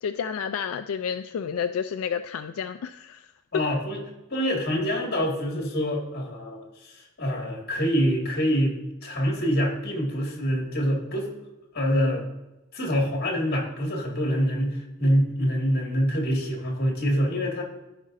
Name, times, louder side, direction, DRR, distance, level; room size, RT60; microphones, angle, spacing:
voice 1, 0.0-3.2, left 7 dB, 80° left, 9 dB, 0.3 m, -30 dB
voice 2, 3.5-4.0 4.3-11.3 11.7-12.2 12.7-17.6, equal, 50° left, 0 dB, 2.0 m, -25 dB
15.0 x 5.2 x 2.6 m, 0.98 s
head